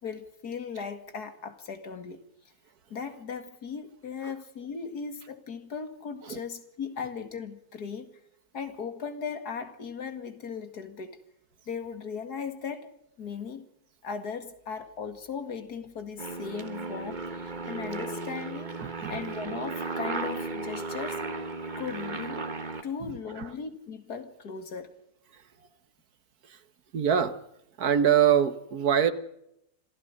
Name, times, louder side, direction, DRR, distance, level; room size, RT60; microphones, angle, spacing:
voice 1, 0.0-2.2 2.9-8.1 8.5-11.2 11.7-13.7 14.0-21.2 21.8-22.5 22.8-24.9, left 6 dB, 85° left, 2.5 m, -38 dB
Aircraft, 16.2-22.8, right 3 dB, 30° right, 1.6 m, -35 dB
voice 2, 18.8-19.2 26.5-26.6 26.9-27.4 27.8-29.1, right 9 dB, 75° right, 1.9 m, -23 dB
26.0 x 15.0 x 6.6 m
omnidirectional pair, 1.6 m